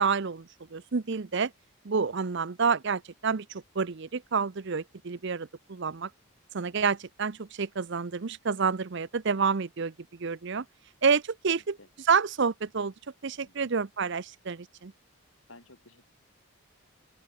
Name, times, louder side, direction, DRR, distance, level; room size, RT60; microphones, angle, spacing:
voice 1, 0.0-1.5 1.8-6.1 6.5-9.9 10.2-10.6 11.0-11.8 12.1-12.9 13.2-14.9, right 5 dB, 55° right, 0.6 m, -28 dB
voice 2, 15.5-16.1, left 2 dB, 70° left, 6.9 m, -54 dB
open air
head